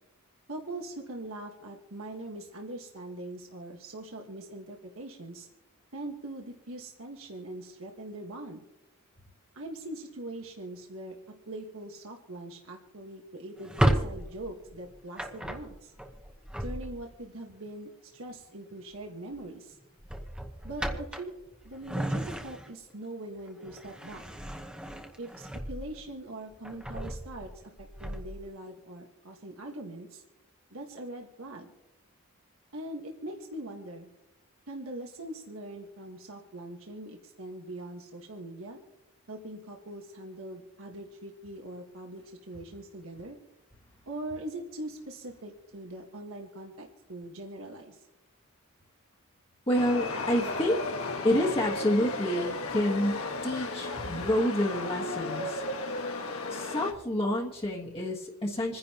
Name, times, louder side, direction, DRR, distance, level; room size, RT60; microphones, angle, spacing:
voice 1, 0.5-5.5 5.9-8.6 9.5-11.2 11.5-15.9 16.6-19.8 20.6-21.3 21.6-24.2 25.2-30.2 30.7-31.7 32.7-34.1 34.7-38.8 39.3-43.4 44.0-48.0, right 1 dB, 75° right, 1 dB, 1.5 m, -42 dB
Drawer open or close, 13.6-17.2 18.7-19.0 19.3-19.5 20.0-22.9 23.4-26.1 26.5-28.4, right 1 dB, 5° right, 1.0 m, -33 dB
Chatter / Subway metro underground, 49.7-56.9, left 2 dB, 80° left, 1.5 m, -34 dB
voice 2, 49.7-50.8 51.2-55.6 56.5-58.8, left 1 dB, 25° left, -4 dB, 1.5 m, -28 dB
27.5 x 10.5 x 3.0 m, 0.95 s
head